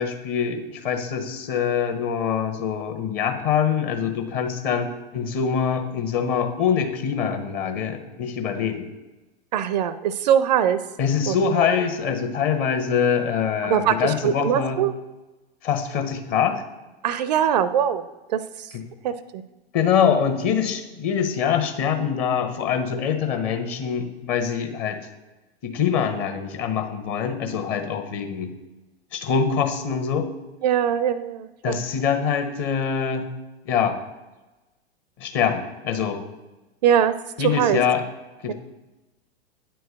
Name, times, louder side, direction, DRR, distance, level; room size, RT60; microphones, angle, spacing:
voice 1, 0.0-8.9 11.0-14.8 15.6-16.6 19.7-25.0 25.6-28.5 29.1-30.2 31.6-33.3 33.7-34.0 35.2-36.2 37.4-38.0 38.4-38.5, left 7 dB, 40° left, 6 dB, 1.1 m, -24 dB
voice 2, 9.5-10.8 11.3-11.7 13.6-14.9 17.0-18.7 19.0-19.4 30.6-31.8 36.8-37.8 38.5-38.6, right 9 dB, 45° right, 15 dB, 0.4 m, -22 dB
9.4 x 4.6 x 6.7 m, 1.1 s
figure-of-eight pair, 95°, 31 cm